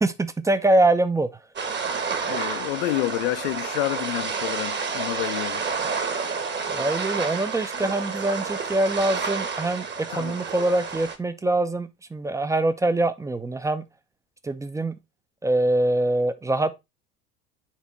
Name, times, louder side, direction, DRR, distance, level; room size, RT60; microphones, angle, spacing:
voice 1, 0.0-1.3 6.7-13.9 14.4-15.0 15.4-16.7, right 2 dB, 5° right, 0.6 m, -24 dB
sound 1, 1.6-11.2, right 5 dB, 25° right, 1.2 m, -30 dB
voice 2, 2.3-5.7 10.1-10.4, left 19 dB, 55° left, 0.6 m, -29 dB
7.4 x 3.5 x 4.1 m
figure-of-eight pair, 75°, 44 cm